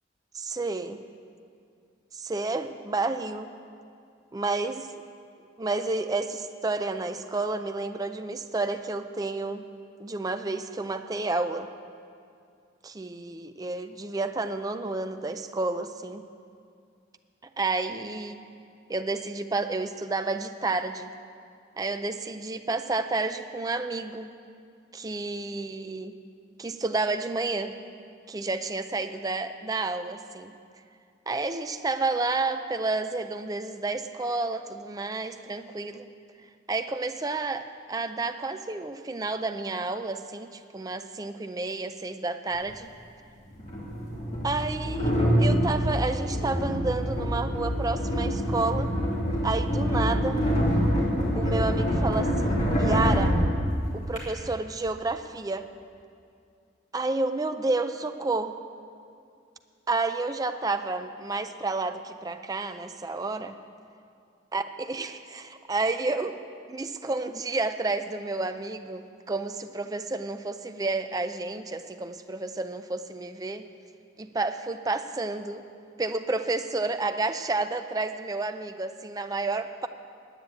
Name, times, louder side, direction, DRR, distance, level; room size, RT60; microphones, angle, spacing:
voice 1, 0.3-1.0 2.1-3.5 4.3-4.9 5.6-9.6 10.0-11.7 12.8-16.2 17.6-18.5 18.9-21.1 21.8-24.3 24.9-26.2 26.6-27.7 28.3-30.5 31.3-36.1 36.7-42.9 44.4-45.1 45.4-48.9 49.4-50.4 51.3-53.4 53.9-55.7 56.9-58.6 59.9-63.6 64.5-66.4 66.7-73.7 74.2-75.6 76.0-79.9, right 3 dB, 20° right, 8 dB, 0.4 m, -30 dB
sound 1, 42.5-42.6 43.6-54.2, equal, 35° left, 2.6 m, -26 dB
9.7 x 9.0 x 8.2 m, 2.4 s
head